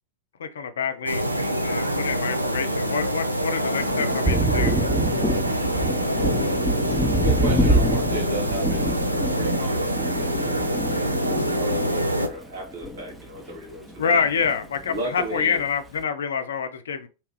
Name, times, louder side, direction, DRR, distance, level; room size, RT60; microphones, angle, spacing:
voice 1, 0.4-1.2 1.6-4.9 14.0-17.1, left 6 dB, 65° left, 9 dB, 0.4 m, -27 dB
sound 1, 1.1-12.3, equal, 85° right, 0.4 m, -25 dB
Thunder, 3.8-13.6 13.9-15.0, right 1 dB, 5° right, 0.6 m, -26 dB
voice 2, 7.1-9.0 9.3-14.2 14.9-15.6, right 1 dB, 60° right, -1 dB, 1.4 m, -34 dB
2.9 x 2.3 x 3.0 m, 0.31 s
figure-of-eight pair, 90°, 0 cm